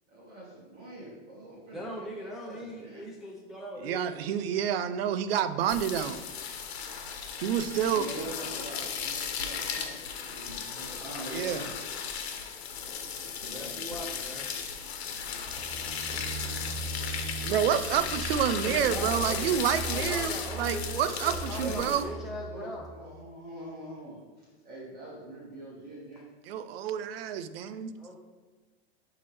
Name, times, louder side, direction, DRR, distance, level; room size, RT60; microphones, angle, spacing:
voice 1, 0.1-3.1 7.9-11.7 13.2-14.4 14.8-14.9 21.5-22.2 22.5-26.3, right 1 dB, 30° right, -6 dB, 2.0 m, -44 dB
voice 2, 1.7-4.0 10.6-10.9 12.9-13.0 13.5-14.5 16.6-16.7 18.4-19.6 19.9-22.8 28.0-28.2, equal, ahead, -3 dB, 0.6 m, -40 dB
voice 3, 3.8-6.2 7.4-8.1 11.3-11.6 17.5-22.0 26.4-27.9, right 9 dB, 70° right, 12 dB, 0.6 m, -29 dB
sound 1, 5.7-22.0, left 6 dB, 85° left, 1.2 m, -36 dB
sound 2, 15.4-23.1, right 2 dB, 55° right, 1.0 m, -39 dB
11.0 x 3.6 x 3.5 m, 1.3 s
supercardioid pair, 145°, 31 cm